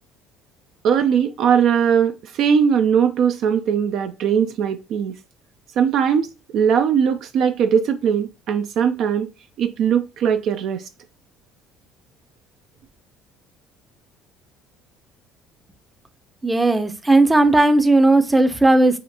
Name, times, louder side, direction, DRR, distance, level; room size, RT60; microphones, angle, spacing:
voice 1, 0.8-5.1 5.8-6.3 6.5-9.3 9.6-10.8, right 7 dB, 65° right, 0.4 m, -19 dB
voice 2, 16.4-19.0, right 2 dB, 15° right, 0.5 m, -16 dB
4.8 x 2.5 x 2.7 m
hypercardioid pair, 65°, 0 cm